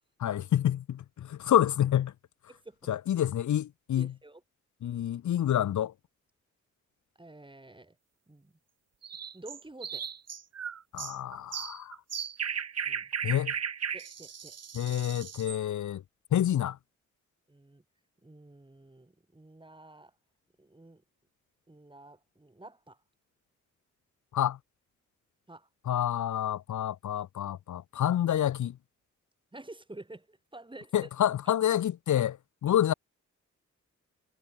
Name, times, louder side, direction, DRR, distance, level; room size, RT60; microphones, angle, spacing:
voice 1, 0.2-2.1 2.9-4.1 4.8-5.9 10.9-12.0 13.2-13.5 14.7-16.0 16.3-16.8 24.3-24.6 25.9-28.8 30.9-32.4 32.6-32.9, left 11 dB, 80° left, 0.8 m, -28 dB
voice 2, 2.5-2.9 4.0-4.4 7.2-8.0 8.3-8.5 9.3-10.1 12.9-13.1 13.9-14.6 17.5-17.8 18.2-20.1 20.6-21.0 21.7-23.0 25.5-25.7 29.5-30.9 31.5-31.6, right 2 dB, 15° right, 6.2 m, -50 dB
sound 1, 9.0-15.6, right 7 dB, 60° right, 1.7 m, -36 dB
wide cardioid pair, 110°, 29 cm